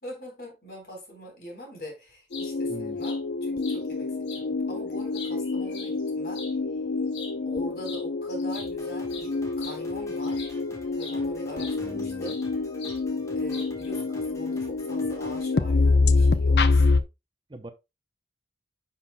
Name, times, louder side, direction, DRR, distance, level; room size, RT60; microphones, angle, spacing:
voice 1, 0.0-6.4 7.5-10.5 10.9-12.4 13.4-17.0, equal, 55° left, 3.9 m, -43 dB
sound 1, 2.1-2.5 3.0-3.2 3.6-3.8 4.3-4.4 4.9-6.5 7.1-7.4 7.8-8.0 8.3-10.6 11.0-11.2 11.6-12.5 12.8-13.0 13.5-13.9, left 5 dB, 90° left, 2.2 m, -42 dB
sound 2, 2.3-17.0, left 3 dB, 75° left, 0.6 m, -26 dB
voice 2, 2.7-3.0 11.8-12.3 17.5-17.7, right 1 dB, 25° right, 0.6 m, -41 dB
Drum kit, 8.6-16.4, left 1 dB, 15° left, 1.3 m, -50 dB
10.0 x 5.7 x 2.2 m
head